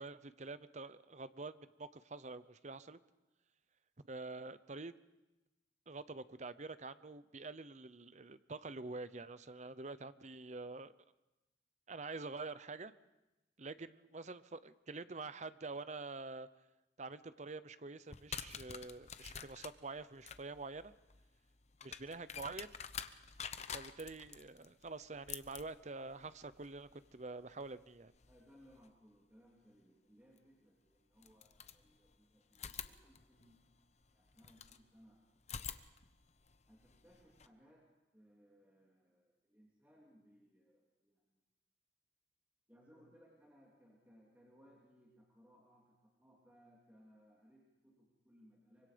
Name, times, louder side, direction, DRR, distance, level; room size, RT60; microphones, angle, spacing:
voice 1, 0.0-3.0 4.0-4.9 5.9-10.9 11.9-12.9 13.6-16.5 17.0-20.9 21.8-22.7 23.7-28.1, right 3 dB, 40° right, 14 dB, 0.8 m, -47 dB
sound 1, 18.1-28.9 30.4-30.5 31.2-32.2 32.5-34.8 35.4-37.5, left 7 dB, 35° left, 0.8 m, -50 dB
voice 2, 28.2-33.6 34.1-35.2 35.5-35.8 36.7-37.9 38.1-41.4 42.7-48.9, equal, 10° right, -4 dB, 3.1 m, -65 dB
24.5 x 24.5 x 5.2 m, 1.0 s
head